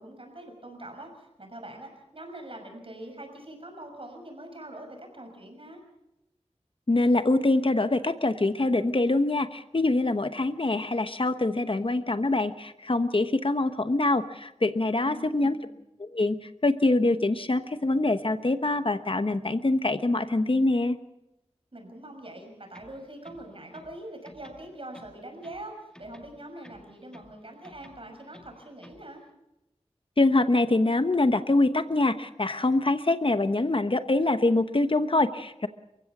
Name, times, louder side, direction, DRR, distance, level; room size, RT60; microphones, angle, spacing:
voice 1, 0.0-5.8 15.0-15.7 21.7-29.2, right 1 dB, 55° right, 4 dB, 6.2 m, -43 dB
voice 2, 6.9-15.6 16.0-21.0 30.2-35.7, left 2 dB, 50° left, 10 dB, 1.1 m, -24 dB
sound 1, 22.7-24.0 24.2-25.7 25.9-27.4 27.6-29.1, left 1 dB, 5° left, 2.3 m, -53 dB
29.5 x 16.0 x 6.1 m, 0.91 s
wide cardioid pair, 60°, 11 cm